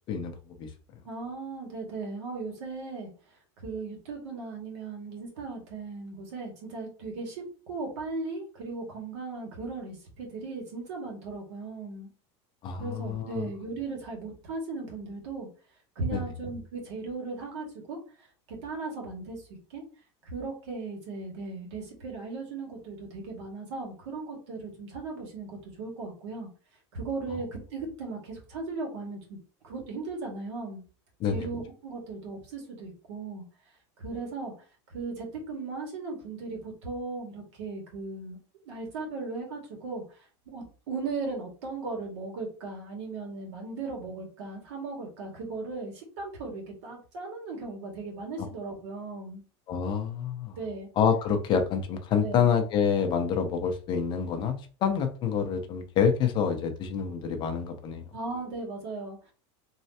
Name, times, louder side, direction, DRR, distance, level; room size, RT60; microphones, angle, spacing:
voice 1, 1.0-3.1 3.6-12.1 12.8-15.5 16.0-18.0 18.5-19.4 19.7-19.8 20.2-26.5 26.9-29.4 29.6-30.8 31.2-33.4 34.0-34.5 34.9-38.4 38.7-40.0 40.5-49.4 50.6-50.9 52.2-52.5 58.1-59.3, right 3 dB, 80° right, 0 dB, 2.1 m, -37 dB
voice 2, 12.6-13.5 16.1-16.2 31.2-31.5 48.4-48.5 49.7-50.6 51.0-58.1, left 7 dB, 35° left, 6 dB, 0.7 m, -27 dB
4.5 x 3.2 x 2.8 m, 0.38 s
supercardioid pair, 155°, 15 cm